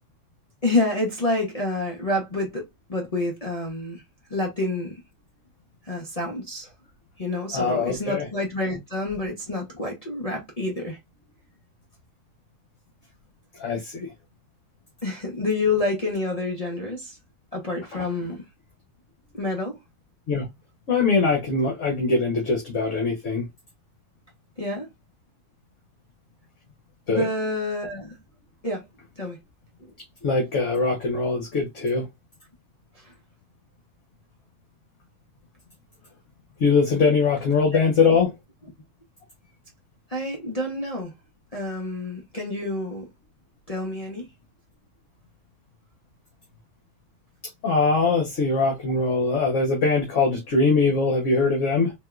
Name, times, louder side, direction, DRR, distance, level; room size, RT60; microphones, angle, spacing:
voice 1, 0.6-4.0 4.3-5.0 5.8-6.7 7.2-11.0 15.0-17.2 17.5-18.4 19.3-19.8 24.6-24.9 27.1-28.2 28.6-28.8 29.2-29.4 37.7-37.8 38.0-38.2 40.1-41.1 41.5-43.1 43.7-44.3, left 2 dB, 35° left, 0.7 m, -28 dB
voice 2, 7.5-8.3 13.6-14.1 17.9-18.0 20.3-20.5 20.9-23.5 27.1-27.3 30.2-32.1 36.6-38.3 47.6-51.9, left 4 dB, 55° left, 1.2 m, -22 dB
3.5 x 3.0 x 2.3 m
omnidirectional pair, 1.7 m